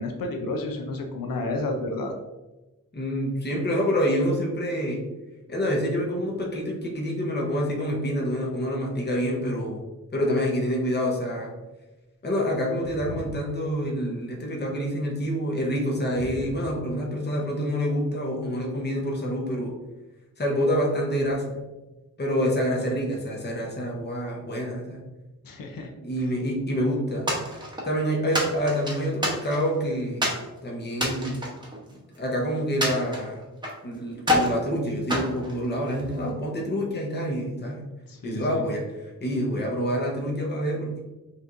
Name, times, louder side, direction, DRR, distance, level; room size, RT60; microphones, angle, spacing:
voice 1, 0.0-2.1 25.4-25.9 26.2-26.3 36.0-36.3 38.1-38.6, left 2 dB, 90° left, 4 dB, 0.6 m, -31 dB
voice 2, 2.9-5.0 5.5-9.8 10.1-11.5 12.2-19.7 20.4-21.6 22.2-25.0 26.0-27.3 27.8-30.3 30.6-31.5 32.2-33.4 33.8-37.8 38.2-41.0, equal, 30° left, -1 dB, 0.8 m, -27 dB
sound 1, 27.3-27.9 28.3-29.8 30.2-30.5 30.9-32.3 32.8-33.8 34.2-34.6 35.1-36.1, left 1 dB, 15° right, 0.8 m, -27 dB
5.7 x 3.0 x 2.5 m, 1.1 s
wide cardioid pair, 175°, 33 cm